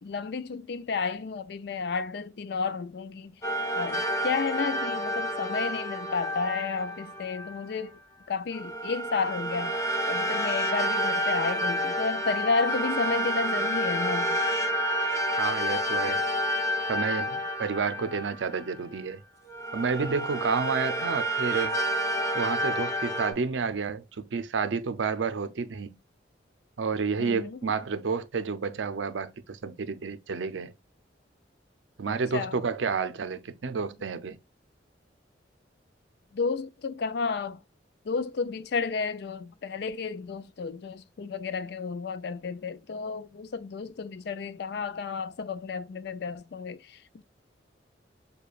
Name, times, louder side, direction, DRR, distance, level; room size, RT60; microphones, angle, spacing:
voice 1, 0.0-3.4 3.8-7.9 8.3-9.7 10.1-14.4 27.2-27.6 32.1-32.6 36.3-37.6 38.1-47.2, left 5 dB, 60° left, 0.4 m, -32 dB
sound 1, 3.4-7.6 8.5-19.0 19.5-23.3, equal, 15° left, 0.9 m, -29 dB
voice 2, 15.3-16.2 16.9-19.2 19.7-21.8 22.3-26.0 26.8-30.7 32.0-34.4, right 5 dB, 85° right, 0.5 m, -30 dB
6.7 x 2.3 x 2.4 m
head